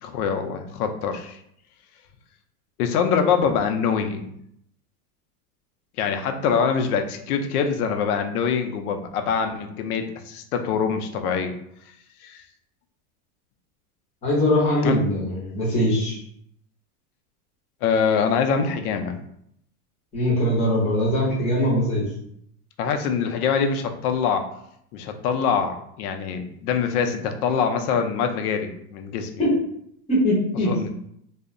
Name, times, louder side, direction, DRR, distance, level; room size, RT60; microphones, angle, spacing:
voice 1, 0.0-1.4 2.8-4.3 6.0-11.5 12.2-12.4 14.8-15.0 17.8-19.2 22.8-24.4 24.9-29.3 30.6-30.9, left 6 dB, 75° left, 6 dB, 0.5 m, -24 dB
voice 2, 14.2-16.2 20.1-22.1 29.4-29.6 30.1-30.8, equal, 15° left, -5 dB, 0.6 m, -21 dB
2.6 x 2.1 x 2.4 m, 0.71 s
supercardioid pair, 150°, 45 cm